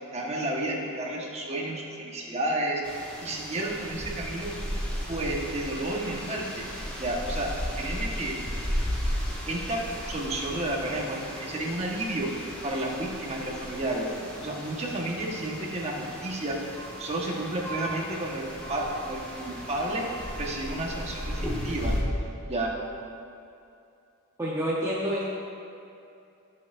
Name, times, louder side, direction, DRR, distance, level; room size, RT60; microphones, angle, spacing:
voice 1, 0.1-4.5 5.1-6.7 7.0-8.5 9.5-14.1 14.4-20.1 20.3-22.0 22.5-22.8, right 1 dB, 30° right, -2 dB, 1.2 m, -31 dB
sound 1, 2.8-22.0, equal, 5° left, 1.8 m, -35 dB
voice 2, 24.4-25.2, equal, 15° right, -7 dB, 0.8 m, -28 dB
17.5 x 6.6 x 2.5 m, 2.6 s
head